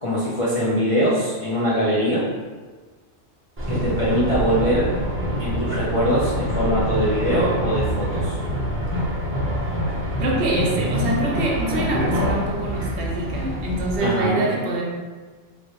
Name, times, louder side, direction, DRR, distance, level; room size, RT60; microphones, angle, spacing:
voice 1, 0.0-2.3 3.7-4.9 5.4-8.4 14.0-14.4, equal, 40° left, -9 dB, 0.5 m, -22 dB
sound 1, 3.6-14.0, equal, 15° right, 0.5 m, -25 dB
voice 2, 10.2-14.8, right 2 dB, 65° right, -1 dB, 0.8 m, -25 dB
3.3 x 2.6 x 2.9 m, 1.4 s
omnidirectional pair, 1.3 m